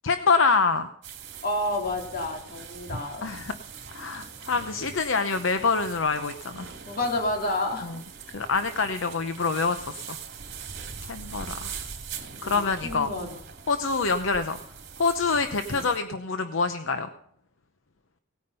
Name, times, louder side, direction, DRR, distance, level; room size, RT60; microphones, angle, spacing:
voice 1, 0.0-0.9 3.2-3.6 3.9-6.7 7.8-7.9 8.3-10.2 11.1-11.7 12.4-13.1 13.7-14.6 15.0-17.1, left 4 dB, 70° left, 9 dB, 0.8 m, -26 dB
sound 1, 1.0-16.0, right 5 dB, 60° right, 2.5 m, -42 dB
voice 2, 1.4-3.3 6.9-7.9 12.4-13.4 15.7-15.9, left 1 dB, 50° left, 2 dB, 2.8 m, -30 dB
18.5 x 9.6 x 5.5 m, 0.68 s
head